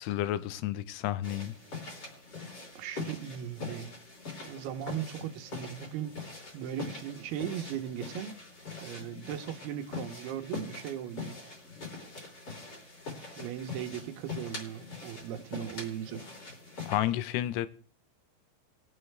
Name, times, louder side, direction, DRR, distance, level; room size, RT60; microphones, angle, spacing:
voice 1, 0.0-1.5 16.9-17.7, left 13 dB, 80° left, 2.7 m, -31 dB
sound 1, 1.2-17.0, left 4 dB, 35° left, 3.9 m, -43 dB
voice 2, 2.8-3.9 4.5-8.4 8.8-11.4 13.4-16.2, right 10 dB, 75° right, 2.6 m, -38 dB
21.5 x 7.2 x 3.3 m
omnidirectional pair, 5.0 m